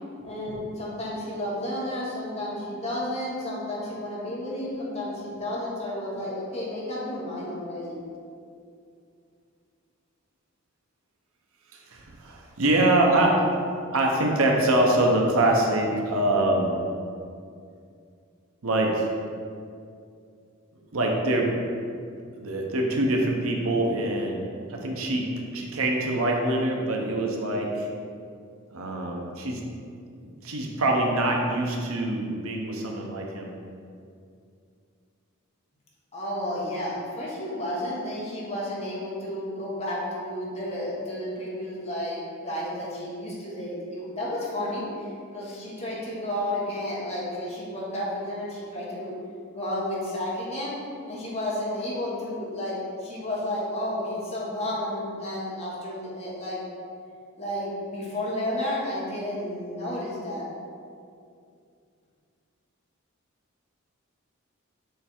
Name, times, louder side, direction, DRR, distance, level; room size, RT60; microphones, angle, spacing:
voice 1, 0.2-7.9 36.1-44.8 45.3-49.1 49.5-50.7 51.1-56.6 57.4-60.5, left 1 dB, 30° left, -6 dB, 1.3 m, -32 dB
voice 2, 11.7-13.5 13.9-16.8 18.6-19.1 20.9-21.5 22.4-24.4 24.7-27.9 28.7-29.6 30.2-33.5, right 1 dB, 75° right, 0 dB, 0.8 m, -24 dB
6.7 x 3.4 x 4.4 m, 2.4 s
head